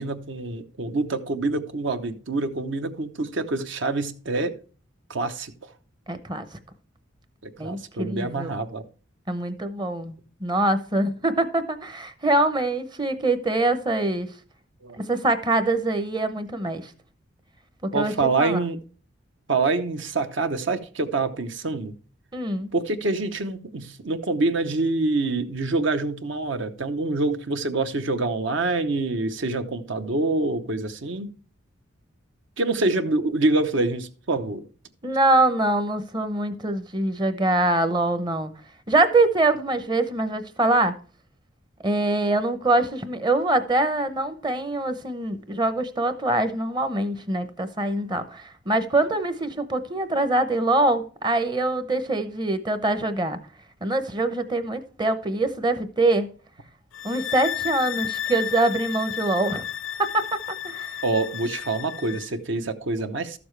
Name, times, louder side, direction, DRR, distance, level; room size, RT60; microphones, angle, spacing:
voice 1, 0.0-4.6 5.1-5.5 7.4-8.8 14.8-15.0 17.9-18.8 19.5-21.9 22.7-31.3 32.6-34.6 61.0-63.4, right 3 dB, 65° right, 0.9 m, -26 dB
voice 2, 6.1-6.5 7.6-8.5 9.3-10.1 10.4-14.3 15.0-16.9 17.8-18.1 18.4-18.6 22.3-22.7 35.0-38.5 38.9-40.9 41.8-53.4 53.8-56.3 57.0-59.6 60.0-61.0, right 2 dB, 20° right, 0.8 m, -24 dB
sound 1, 56.9-62.3, left 10 dB, 75° left, 0.6 m, -32 dB
13.0 x 7.0 x 3.2 m
head